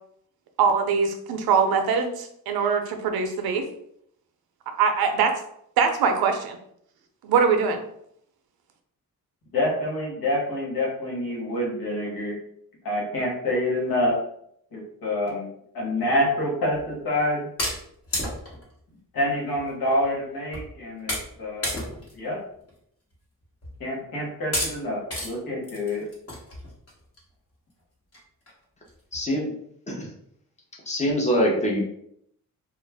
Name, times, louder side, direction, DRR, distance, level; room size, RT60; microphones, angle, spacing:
voice 1, 0.6-3.6 4.8-5.3 5.8-6.6 7.2-7.8, right 6 dB, 85° right, 5 dB, 0.6 m, -22 dB
voice 2, 9.5-12.4 12.8-14.1 14.7-15.5 15.7-17.5 19.1-21.8 22.1-22.4 23.8-26.0, left 1 dB, 75° left, -3 dB, 1.2 m, -27 dB
sound 1, 16.7-16.9 17.6-18.7 19.6-19.7 20.0-20.1 20.5-20.7 21.1-21.4 21.6-22.1 22.6-22.7 23.6-23.8 24.5-24.7 25.1-25.3 25.6-27.2 27.7-27.8 28.1-28.2 28.5-28.6 28.9-29.2, left 1 dB, 40° left, 1.1 m, -31 dB
voice 3, 29.1-29.5 29.9-30.1 30.9-31.8, equal, 20° left, -2 dB, 0.7 m, -24 dB
2.4 x 2.1 x 3.3 m, 0.71 s
cardioid pair, 110°, 36 cm